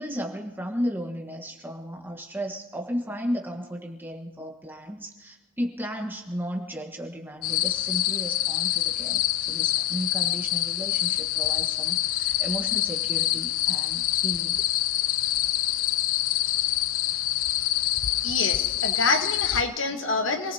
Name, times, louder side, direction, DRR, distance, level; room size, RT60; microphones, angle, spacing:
voice 1, 0.0-14.6, equal, 10° right, 2 dB, 1.4 m, -34 dB
sound 1, 7.4-19.6, left 14 dB, 85° left, 0.4 m, -26 dB
voice 2, 18.2-20.5, left 3 dB, 65° left, 5 dB, 1.4 m, -26 dB
27.5 x 18.5 x 2.9 m, 1.1 s
head